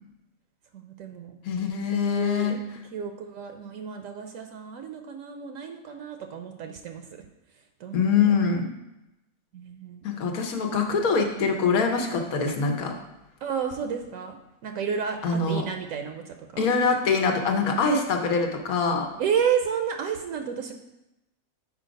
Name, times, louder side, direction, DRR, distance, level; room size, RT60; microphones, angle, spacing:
voice 1, 0.7-1.4 1.9-2.6 2.9-7.1 7.8-8.1 9.5-10.0 13.4-14.4 14.6-16.7 19.2-20.7, right 7 dB, 75° right, 5 dB, 1.0 m, -31 dB
voice 2, 1.4-2.6 7.9-8.7 10.0-12.9 15.2-15.6 16.6-19.1, left 5 dB, 90° left, 4 dB, 1.4 m, -24 dB
6.3 x 4.7 x 5.1 m, 0.94 s
omnidirectional pair, 1.5 m